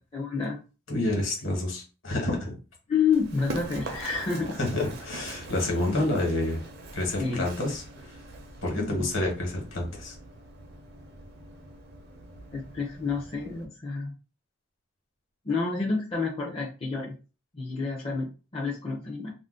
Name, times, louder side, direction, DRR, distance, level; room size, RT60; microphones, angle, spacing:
voice 1, 0.1-0.6 2.9-4.6 7.2-7.4 8.7-9.1 12.5-14.1 15.4-17.2 17.5-19.3, left 5 dB, 25° left, -3 dB, 0.5 m, -29 dB
voice 2, 0.9-2.5 4.6-6.6 6.9-7.8 8.6-10.1, left 1 dB, 65° left, 0 dB, 1.2 m, -28 dB
Run, 3.1-13.7, right 2 dB, 50° right, 0.5 m, -43 dB
2.5 x 2.1 x 3.6 m, 0.33 s
head